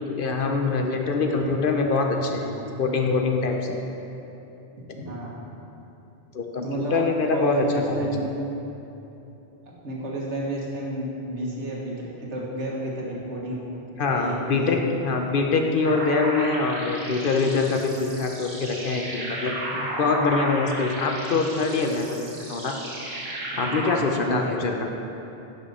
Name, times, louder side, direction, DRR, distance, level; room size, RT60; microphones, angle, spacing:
voice 1, 0.0-2.5 2.8-3.8 6.3-8.1 14.0-22.2 22.5-22.7 23.6-24.9, left 4 dB, 55° left, 3 dB, 0.8 m, -24 dB
voice 2, 5.0-5.5 6.6-7.0 7.3-8.2 9.8-11.9 12.2-13.6 14.1-14.7 23.5-24.6, right 1 dB, 80° right, -4 dB, 1.8 m, -31 dB
sound 1, 15.8-23.9, right 1 dB, 60° right, 1.8 m, -34 dB
11.0 x 5.5 x 4.1 m, 3.0 s
omnidirectional pair, 1.2 m